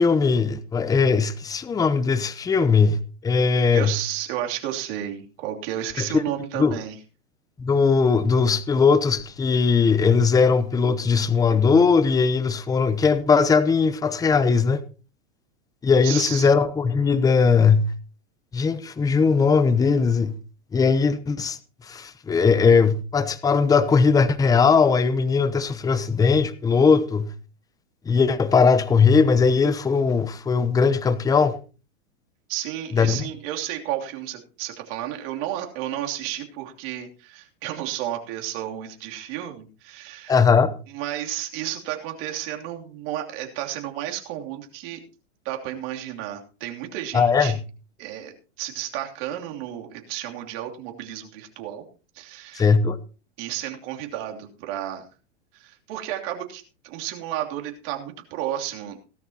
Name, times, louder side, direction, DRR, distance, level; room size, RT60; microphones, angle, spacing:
voice 1, 0.0-4.0 6.0-6.2 6.6-6.8 7.6-14.8 15.8-17.9 18.5-20.3 20.7-27.3 28.1-31.6 32.9-33.2 40.3-40.7 47.1-47.6 52.5-53.0, left 5 dB, 10° left, 0.8 m, -19 dB
voice 2, 3.7-6.9 16.0-16.5 32.5-40.4 40.9-45.0 45.4-47.5 48.0-51.9 52.1-52.7 53.4-55.1 55.5-59.0, right 12 dB, 50° right, 3.0 m, -32 dB
18.0 x 12.5 x 2.9 m
hypercardioid pair, 125°, 37 cm